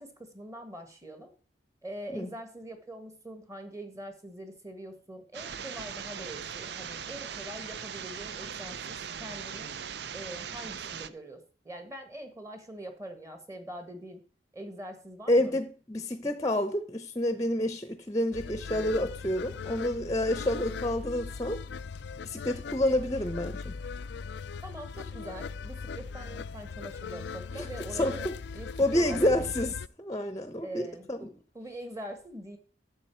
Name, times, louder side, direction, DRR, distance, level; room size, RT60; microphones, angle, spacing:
voice 1, 0.0-1.3 1.8-9.7 10.1-14.2 14.5-15.5 24.6-29.7 30.6-31.3 31.5-32.6, right 1 dB, 15° right, 1.5 m, -43 dB
sound 1, 5.3-11.1, right 7 dB, 60° right, 0.6 m, -39 dB
voice 2, 15.3-21.6 22.2-23.7 27.6-27.7 28.0-28.3 28.8-31.3, left 1 dB, 20° left, 0.7 m, -29 dB
sound 2, 18.3-29.9, left 5 dB, 65° left, 0.4 m, -39 dB
11.5 x 7.8 x 4.5 m
head